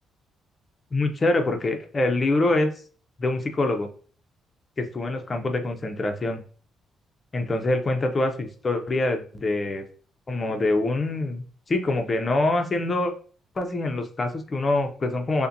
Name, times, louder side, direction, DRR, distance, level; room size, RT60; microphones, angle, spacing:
voice 1, 0.9-2.7 3.2-3.9 4.8-6.4 7.3-9.8 10.3-13.1 13.6-15.5, left 2 dB, 35° left, 5 dB, 0.6 m, -25 dB
5.3 x 2.2 x 2.6 m, 0.42 s
cardioid pair, 90°, 0 cm